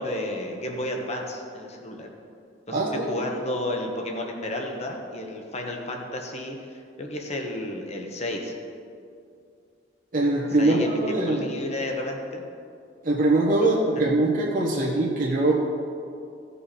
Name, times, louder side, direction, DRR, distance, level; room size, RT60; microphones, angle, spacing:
voice 1, 0.0-2.1 2.7-8.5 10.6-12.4 13.6-13.7, left 1 dB, 35° left, 2 dB, 1.1 m, -32 dB
voice 2, 2.7-3.1 10.1-11.5 13.0-15.5, right 2 dB, 45° right, -4 dB, 1.1 m, -22 dB
16.0 x 5.5 x 4.2 m, 2.4 s
head